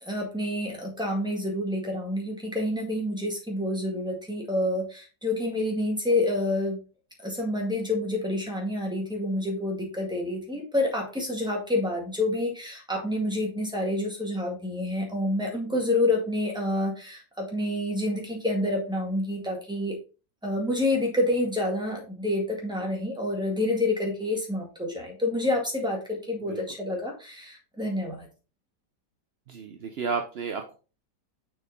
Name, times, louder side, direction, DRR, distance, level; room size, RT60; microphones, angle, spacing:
voice 1, 0.0-6.8 7.2-20.0 20.4-28.3, left 1 dB, ahead, 0 dB, 1.8 m, -28 dB
voice 2, 29.5-30.7, right 5 dB, 65° right, 4 dB, 0.6 m, -32 dB
6.3 x 5.0 x 3.9 m, 0.33 s
omnidirectional pair, 1.9 m